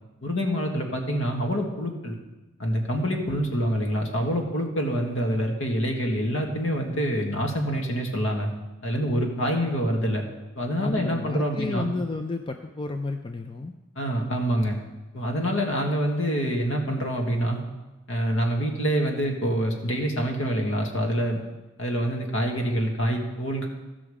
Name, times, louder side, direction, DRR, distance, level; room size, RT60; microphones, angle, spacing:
voice 1, 0.2-2.2 2.6-8.5 8.8-10.2 10.6-11.9 14.0-14.8 15.1-17.6 18.1-21.4 21.8-23.7, equal, 65° left, 2 dB, 1.6 m, -26 dB
voice 2, 10.8-13.7, left 3 dB, 25° left, 6 dB, 0.4 m, -31 dB
14.5 x 6.1 x 4.9 m, 1.1 s
head